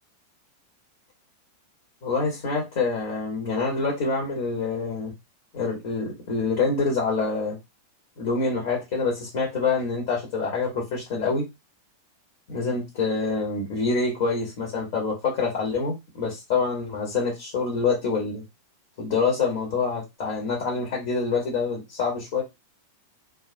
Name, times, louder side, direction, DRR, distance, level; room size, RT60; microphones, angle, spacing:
voice 1, 2.0-5.1 5.5-7.6 8.2-11.5 12.5-18.4 19.0-22.4, left 4 dB, 50° left, 0.9 m, -26 dB
2.2 x 2.1 x 2.6 m
figure-of-eight pair, 90°, 0 cm